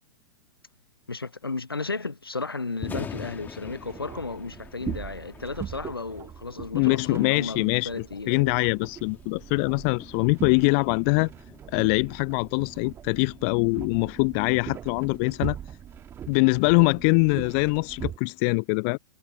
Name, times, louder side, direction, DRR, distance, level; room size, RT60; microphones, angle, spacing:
voice 1, 1.1-8.6, left 3 dB, 80° left, 0.8 m, -34 dB
Thunder, 2.7-16.8, left 6 dB, 15° left, 2.5 m, -46 dB
sound 1, 2.8-18.2, right 9 dB, 20° right, 1.6 m, -41 dB
voice 2, 6.7-11.3 11.7-15.6 16.3-19.0, left 38 dB, 30° left, 0.3 m, -23 dB
figure-of-eight pair, 105°, 12 cm